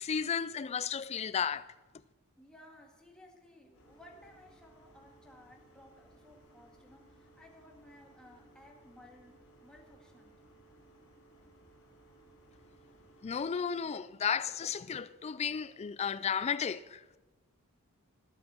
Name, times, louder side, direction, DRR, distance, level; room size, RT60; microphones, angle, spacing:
voice 1, 0.0-1.7 13.2-17.0, left 7 dB, 30° left, 0.3 m, -33 dB
voice 2, 2.4-10.3, left 1 dB, 5° left, 1.8 m, -58 dB
sound 1, 3.7-13.5, right 1 dB, 60° left, 4.8 m, -61 dB
20.0 x 7.5 x 4.3 m
head